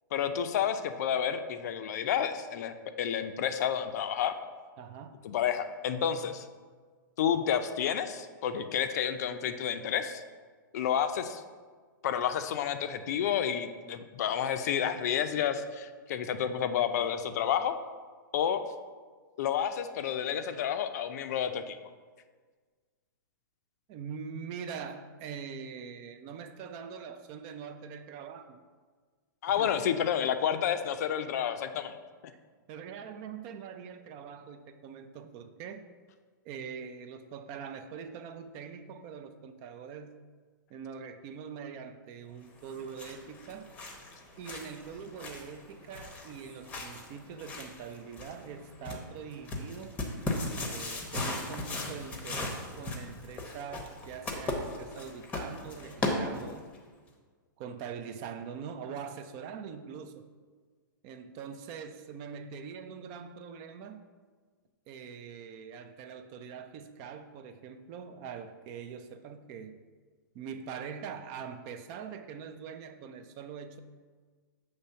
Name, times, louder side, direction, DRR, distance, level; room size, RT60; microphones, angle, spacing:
voice 1, 0.1-4.3 5.2-6.5 7.2-10.2 10.7-11.4 12.0-17.8 18.3-18.6 19.4-21.8 29.4-32.0, left 9 dB, 50° left, 9 dB, 0.5 m, -30 dB
voice 2, 4.8-5.3 23.9-28.6 29.5-29.8 32.7-35.8 36.4-40.2 40.7-43.7 44.4-50.0 50.6-56.7 57.6-60.3 61.0-64.0 64.9-69.8 70.3-73.8, right 6 dB, 30° right, 9 dB, 0.3 m, -43 dB
sound 1, 42.6-56.8, left 2 dB, 15° left, 0.7 m, -38 dB
6.9 x 3.3 x 5.6 m, 1.5 s
hypercardioid pair, 150°, 11 cm